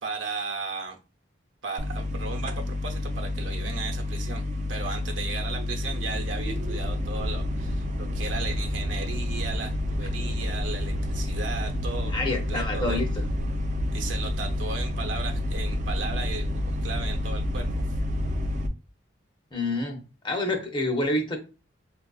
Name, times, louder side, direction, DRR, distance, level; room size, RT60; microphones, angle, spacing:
voice 1, 0.0-1.0 1.6-13.0 13.9-18.0, right 4 dB, 75° right, 2 dB, 0.8 m, -36 dB
sound 1, 1.8-18.7, left 1 dB, 35° right, 0.3 m, -29 dB
voice 2, 12.1-13.1 19.5-20.0 20.2-21.4, left 2 dB, 25° left, 4 dB, 0.6 m, -27 dB
4.4 x 2.4 x 2.3 m, 0.32 s
head